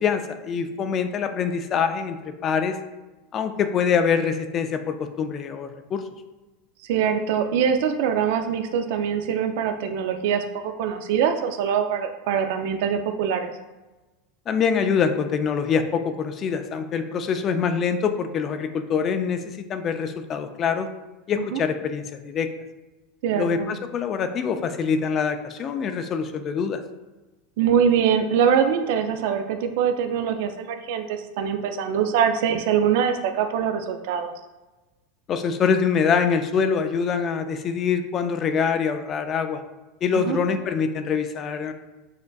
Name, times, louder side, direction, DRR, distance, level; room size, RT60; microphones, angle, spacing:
voice 1, 0.0-2.8 3.3-6.0 14.5-20.9 21.3-22.5 23.3-26.8 35.3-39.6 40.0-41.7, left 6 dB, 35° left, 8 dB, 0.4 m, -24 dB
voice 2, 6.8-13.5 21.4-21.6 23.2-23.7 27.6-34.3 40.2-40.4, right 7 dB, 70° right, 6 dB, 0.3 m, -23 dB
6.2 x 2.5 x 2.3 m, 1.1 s
supercardioid pair, 115°, 0 cm